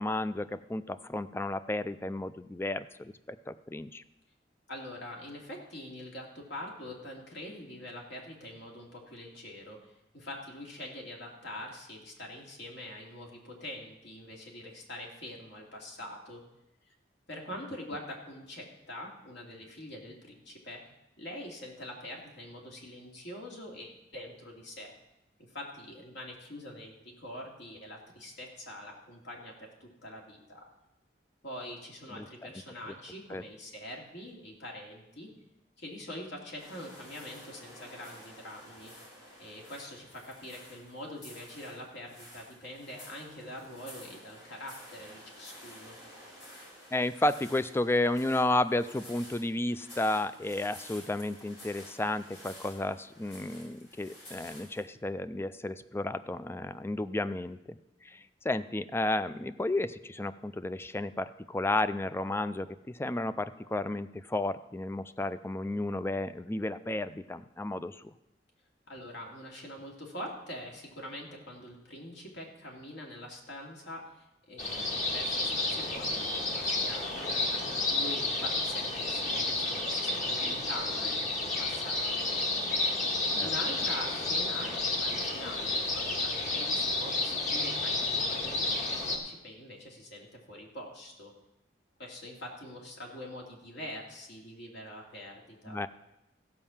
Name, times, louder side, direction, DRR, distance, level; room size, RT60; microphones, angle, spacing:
voice 1, 0.0-4.0 32.1-32.3 32.9-33.0 33.3-33.4 46.9-68.0 83.3-83.5 95.7-95.9, left 2 dB, 15° left, 13 dB, 0.4 m, -32 dB
voice 2, 4.7-16.4 17.3-20.8 21.2-24.9 25.5-30.6 31.4-35.3 35.8-38.9 39.4-46.0 68.9-77.5 77.9-82.3 83.4-91.3 92.0-95.8, left 1 dB, 70° left, -1 dB, 2.6 m, -44 dB
sound 1, 36.6-54.9, left 1 dB, 90° left, 5.8 m, -51 dB
sound 2, 74.6-89.2, left 2 dB, 45° left, 1.7 m, -31 dB
15.0 x 5.5 x 7.2 m, 0.90 s
head